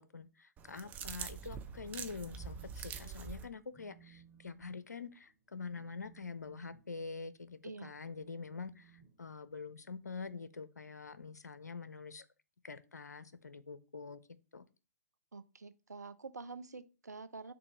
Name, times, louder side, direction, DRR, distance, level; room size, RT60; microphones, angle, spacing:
voice 1, 0.0-12.3 12.6-14.2 14.5-14.6, left 4 dB, 80° left, 0.6 m, -46 dB
sound 1, 0.6-3.5, right 7 dB, 20° right, 0.6 m, -44 dB
Telephone, 1.7-2.7 3.0-3.3 3.7-9.8, right 7 dB, 15° left, 2.9 m, -62 dB
voice 2, 15.3-17.5, right 4 dB, 80° right, 0.6 m, -47 dB
6.8 x 2.8 x 5.4 m
figure-of-eight pair, 120°, 9 cm